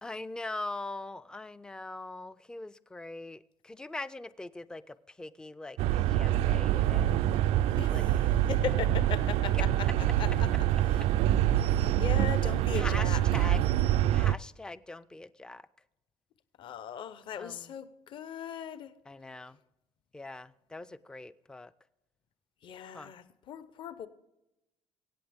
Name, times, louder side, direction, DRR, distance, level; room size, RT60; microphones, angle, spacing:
voice 1, 0.0-7.1 7.9-8.0 12.7-13.6 14.1-15.7 17.4-17.7 19.1-19.6 20.1-21.7 22.8-23.1, left 2 dB, 5° left, 0.4 m, -42 dB
sound 1, 5.8-14.3, right 12 dB, 70° right, 0.4 m, -26 dB
voice 2, 7.8-8.2 8.5-10.5 10.8-13.2 16.6-18.9 22.6-24.1, left 8 dB, 45° left, 0.8 m, -39 dB
24.5 x 8.6 x 3.5 m
cardioid pair, 160°, 11 cm